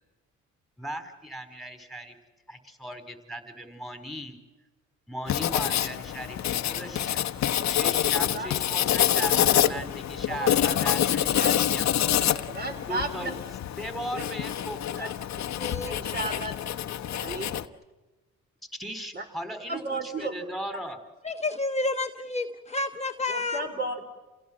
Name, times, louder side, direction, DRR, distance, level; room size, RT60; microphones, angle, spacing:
voice 1, 0.8-2.1 2.5-4.4 5.1-7.2 7.7-12.3 12.9-13.3 13.8-15.1 18.8-21.0, equal, ahead, 7 dB, 4.2 m, -38 dB
Writing, 5.3-17.7, left 11 dB, 65° left, 1.1 m, -26 dB
voice 2, 10.3-10.8 11.3-11.6 12.5-13.3 15.0-15.1 15.8-16.5 17.1-17.6 19.1-19.2 19.7-20.3 23.3-24.0, right 2 dB, 35° right, 5 dB, 4.5 m, -33 dB
voice 3, 15.6-16.0 21.2-23.7, left 2 dB, 20° left, 5 dB, 1.2 m, -30 dB
28.5 x 17.0 x 7.6 m, 1.2 s
cardioid pair, 90°, 30 cm